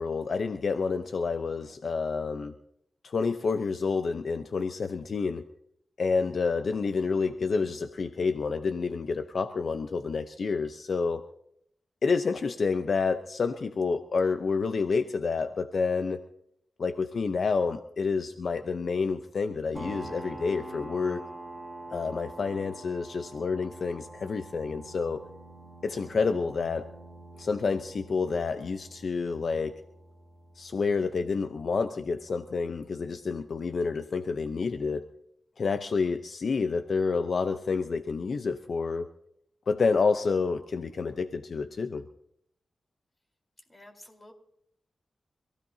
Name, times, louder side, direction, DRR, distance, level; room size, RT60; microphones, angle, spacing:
voice 1, 0.0-2.5 3.0-5.4 6.0-11.2 12.0-16.2 16.8-21.2 21.9-25.2 25.8-26.9 27.4-29.7 30.6-35.0 35.6-39.1 39.7-42.0, left 4 dB, 70° left, 8 dB, 0.7 m, -29 dB
sound 1, 19.7-33.0, right 2 dB, 5° left, 3.6 m, -46 dB
voice 2, 43.7-44.3, left 1 dB, 30° left, 3 dB, 4.0 m, -51 dB
27.0 x 15.5 x 2.8 m, 0.72 s
cardioid pair, 60°, 0 cm